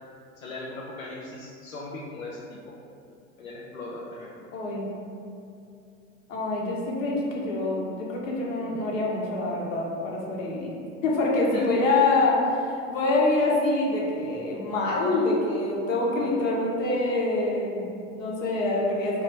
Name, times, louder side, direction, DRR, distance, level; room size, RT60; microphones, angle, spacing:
voice 1, 0.4-2.7 3.4-4.3 11.5-11.6, left 2 dB, 90° left, -4 dB, 0.6 m, -38 dB
voice 2, 4.5-4.9 6.3-10.7 11.0-19.2, left 2 dB, 70° left, -3 dB, 1.1 m, -25 dB
3.2 x 2.7 x 4.4 m, 2.5 s
hypercardioid pair, 85°, 40 cm